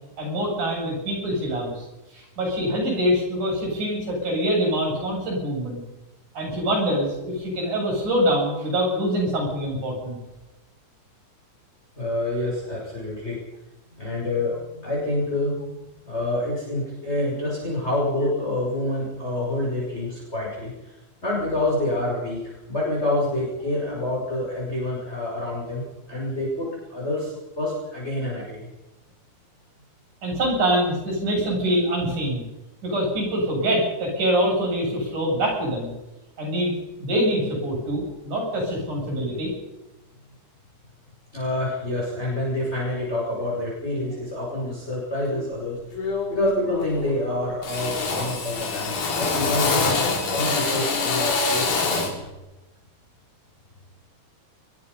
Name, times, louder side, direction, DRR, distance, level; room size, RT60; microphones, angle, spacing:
voice 1, 0.2-5.8 6.3-10.2 30.2-32.4 32.8-35.9 36.4-36.7 37.0-39.5, equal, 80° right, 0 dB, 9.6 m, -24 dB
voice 2, 12.0-13.4 14.0-21.0 21.2-25.8 26.1-28.7 41.3-52.1, left 1 dB, 20° left, -4 dB, 6.6 m, -27 dB
Drill, 45.3-45.5 45.9-46.5 46.7-47.3 47.6-52.2, left 4 dB, 80° left, 4.7 m, -25 dB
23.0 x 22.0 x 5.7 m, 1.0 s
omnidirectional pair, 3.5 m